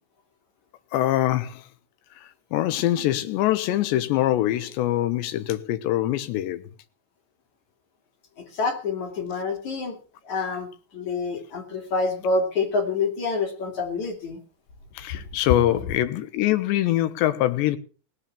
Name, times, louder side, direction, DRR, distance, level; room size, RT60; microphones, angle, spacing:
voice 1, 0.9-1.6 2.5-6.7 14.9-17.8, left 13 dB, 80° left, 3.3 m, -23 dB
voice 2, 8.4-10.0 10.3-14.4, left 3 dB, 45° left, 3.6 m, -27 dB
17.5 x 6.8 x 8.5 m
omnidirectional pair, 5.1 m